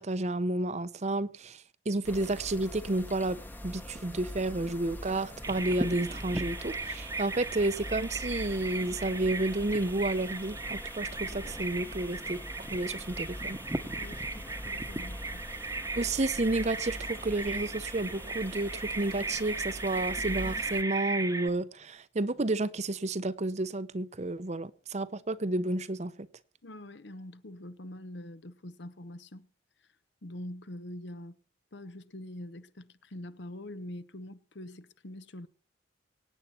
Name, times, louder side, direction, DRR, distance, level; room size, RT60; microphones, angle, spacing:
voice 1, 0.0-12.4 12.7-13.6 16.0-26.3, right 2 dB, 35° right, 0.7 m, -31 dB
sound 1, 2.0-20.8, equal, 10° left, 0.9 m, -43 dB
Bird vocalization bird call bird song, 5.4-21.5, right 3 dB, 15° right, 1.0 m, -37 dB
voice 2, 13.9-15.4 26.6-29.5 30.2-31.4 31.7-35.5, left 1 dB, 65° left, 1.0 m, -44 dB
24.0 x 9.3 x 4.3 m
head